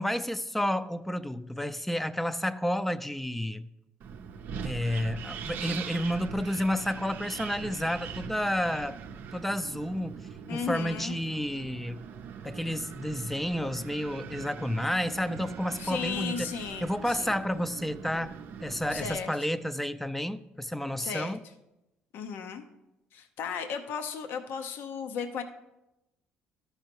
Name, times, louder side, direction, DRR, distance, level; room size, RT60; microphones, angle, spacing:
voice 1, 0.0-3.7 4.6-9.0 9.3-12.0 12.4-16.5 16.8-21.4, equal, 5° left, 0.4 m, -31 dB
Wind, 4.0-19.2, right 7 dB, 65° right, 0.5 m, -42 dB
voice 2, 10.5-11.2 15.8-17.4 18.9-19.3 21.0-21.4 22.1-22.6 23.1-25.4, left 6 dB, 70° left, 0.7 m, -35 dB
13.0 x 5.6 x 3.0 m
supercardioid pair, 85°, 4 cm